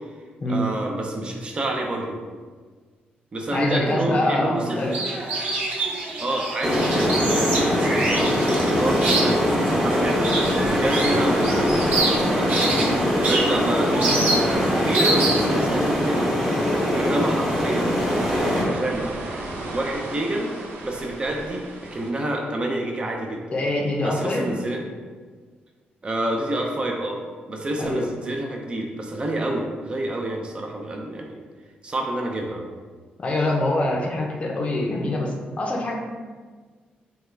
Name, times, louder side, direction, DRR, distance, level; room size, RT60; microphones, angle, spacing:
voice 1, 0.5-2.2 3.3-4.8 6.2-10.4 10.7-12.5 13.3-16.3 16.9-17.9 18.4-19.1 19.7-20.5 20.8-23.5 24.0-24.8 26.0-27.2 27.5-31.4 31.8-32.6, right 1 dB, 30° right, 1 dB, 0.4 m, -28 dB
voice 2, 3.5-5.0 23.5-24.5 27.8-28.1 33.2-35.9, left 1 dB, 35° left, 0 dB, 0.5 m, -24 dB
sound 1, 4.7-15.6, right 2 dB, 60° right, 1.0 m, -27 dB
sound 2, 6.6-18.6, equal, 10° right, 0.8 m, -22 dB
sound 3, 10.4-22.1, right 2 dB, 85° right, 0.5 m, -37 dB
3.5 x 2.2 x 3.1 m, 1.5 s
cardioid pair, 115°, 3 cm